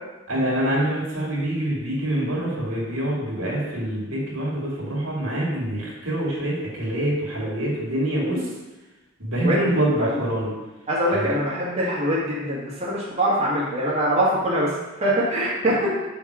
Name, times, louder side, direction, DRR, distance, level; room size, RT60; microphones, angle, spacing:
voice 1, 0.3-8.5 9.2-10.5 11.1-11.3, right 1 dB, 70° right, -4 dB, 2.5 m, -25 dB
voice 2, 10.9-14.7 15.0-15.9, equal, 30° right, -8 dB, 1.7 m, -23 dB
6.0 x 5.9 x 4.8 m, 1.1 s
head